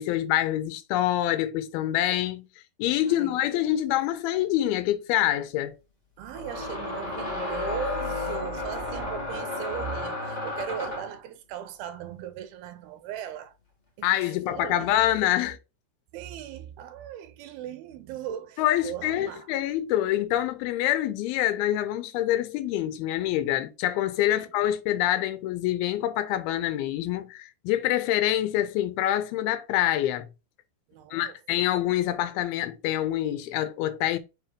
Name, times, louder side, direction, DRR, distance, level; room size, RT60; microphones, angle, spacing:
voice 1, 0.0-2.5 2.8-5.8 14.0-15.6 18.6-30.3 31.1-34.2, left 13 dB, 90° left, 2.6 m, -26 dB
sound 1, 4.4-4.5 6.3-11.2, left 2 dB, 45° left, 0.5 m, -32 dB
voice 2, 6.2-13.5 14.0-15.2 16.1-19.5 24.3-24.5 30.9-31.4, right 10 dB, 90° right, 2.6 m, -38 dB
6.5 x 2.8 x 5.1 m
omnidirectional pair, 4.3 m